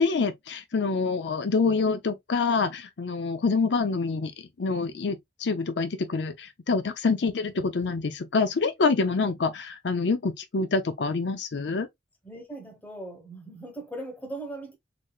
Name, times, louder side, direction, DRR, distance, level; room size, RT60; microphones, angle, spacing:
voice 1, 0.0-4.3 4.6-11.9, left 4 dB, 75° left, 0.5 m, -26 dB
voice 2, 12.2-14.7, right 2 dB, 10° left, 1.1 m, -39 dB
4.0 x 3.1 x 2.3 m
head